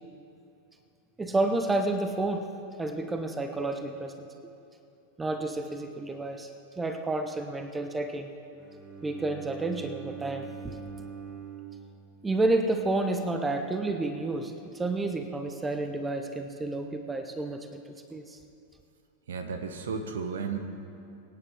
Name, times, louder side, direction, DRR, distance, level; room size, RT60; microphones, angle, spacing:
voice 1, 1.2-2.5 2.8-4.1 4.4-4.5 5.2-6.5 6.8-8.3 9.0-10.8 12.2-17.8 18.1-18.4, right 2 dB, 10° right, 7 dB, 0.9 m, -30 dB
Bowed string instrument, 8.6-12.7, right 6 dB, 30° right, 2.5 m, -43 dB
voice 2, 19.3-20.6, right 5 dB, 65° right, 7 dB, 1.1 m, -33 dB
23.5 x 9.9 x 3.6 m, 2.6 s
figure-of-eight pair, 90°, 0 cm